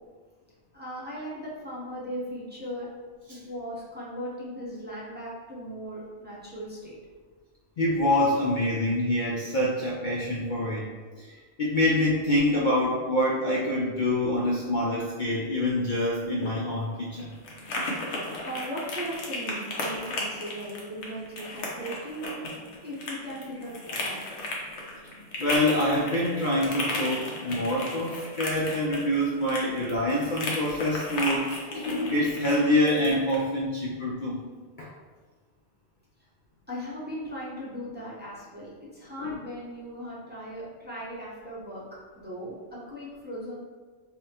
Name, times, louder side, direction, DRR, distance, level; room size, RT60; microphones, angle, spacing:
voice 1, 0.7-2.9 3.3-7.0 17.9-22.4 22.8-24.2 36.7-41.8 42.2-43.5, equal, 10° right, -7 dB, 0.7 m, -38 dB
voice 2, 7.8-10.9 11.2-11.3 11.6-17.3 25.4-34.4 34.8-34.9 39.2-39.3, left 1 dB, 55° left, -4 dB, 0.6 m, -26 dB
sound 1, 16.2-33.4, left 1 dB, 75° left, 1.0 m, -35 dB
5.4 x 2.1 x 2.8 m, 1.4 s
omnidirectional pair, 1.2 m